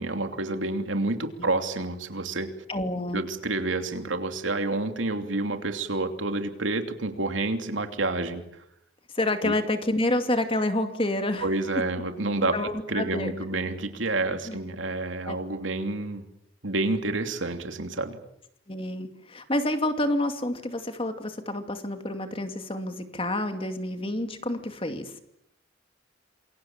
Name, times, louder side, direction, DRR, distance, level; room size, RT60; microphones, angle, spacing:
voice 1, 0.0-2.5 3.1-8.4 9.4-9.5 11.4-12.5 12.9-16.2 16.6-18.2, right 2 dB, 85° right, 6 dB, 3.0 m, -29 dB
voice 2, 2.7-3.2 9.1-11.5 12.5-13.3 14.5-14.6 15.3-15.4 18.7-25.1, left 1 dB, 30° left, 7 dB, 2.5 m, -28 dB
27.5 x 23.5 x 7.4 m, 0.76 s
head